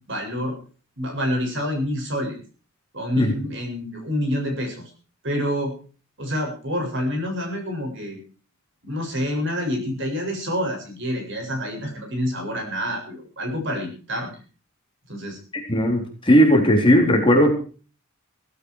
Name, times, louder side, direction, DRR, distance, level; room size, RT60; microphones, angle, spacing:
voice 1, 0.1-0.6 1.0-2.4 2.9-4.9 5.2-5.7 6.2-8.2 8.8-14.3 15.1-15.4, equal, 55° right, 3 dB, 7.4 m, -27 dB
voice 2, 15.7-17.5, equal, 25° left, 2 dB, 3.9 m, -17 dB
16.5 x 15.5 x 4.9 m, 0.39 s
head